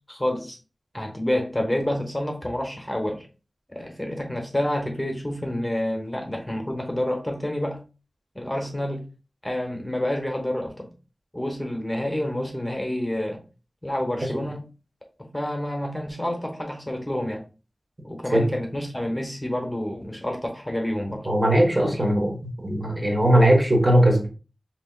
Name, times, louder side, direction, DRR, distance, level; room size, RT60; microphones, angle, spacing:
voice 1, 0.1-0.6 0.9-3.3 3.7-7.8 8.3-9.0 9.4-10.9 11.3-13.4 13.8-14.6 15.2-17.4 18.0-21.3, left 1 dB, 15° left, 1.1 m, -28 dB
voice 2, 21.2-24.3, right 1 dB, 30° right, 1.3 m, -19 dB
5.3 x 2.9 x 2.3 m
wide cardioid pair, 50°, 0 cm